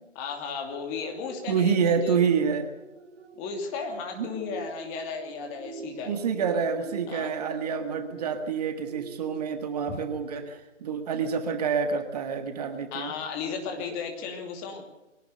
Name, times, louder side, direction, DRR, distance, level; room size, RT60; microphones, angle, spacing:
voice 1, 0.1-2.2 3.4-6.2 7.1-7.3 9.9-10.0 12.9-14.8, left 5 dB, 20° left, 3 dB, 2.8 m, -35 dB
sound 1, 0.9-10.8 11.2-11.4, right 5 dB, 60° right, 1.7 m, -46 dB
voice 2, 1.5-2.7 4.2-4.3 6.0-13.1, right 6 dB, 30° right, 7 dB, 1.7 m, -27 dB
22.5 x 18.0 x 6.7 m, 1.0 s
figure-of-eight pair, 150°, 37 cm